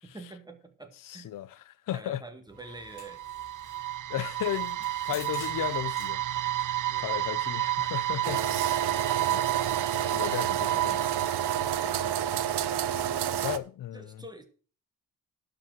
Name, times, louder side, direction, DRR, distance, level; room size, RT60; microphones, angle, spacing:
voice 1, 0.0-1.3 1.9-3.2 5.1-5.2 6.9-7.5 11.6-13.4 13.9-14.5, right 2 dB, 10° right, 1.8 m, -47 dB
voice 2, 1.1-1.6 1.9-2.2 4.1-6.6 7.0-9.5 10.1-11.1 13.4-14.2, left 12 dB, 55° left, 0.6 m, -35 dB
sound 1, 2.5-13.2, left 7 dB, 75° left, 1.8 m, -54 dB
sound 2, 2.7-12.7, right 14 dB, 55° right, 0.5 m, -31 dB
sound 3, 8.2-13.6, right 10 dB, 80° right, 0.8 m, -29 dB
11.5 x 5.0 x 7.7 m
cardioid pair, 110°, 39 cm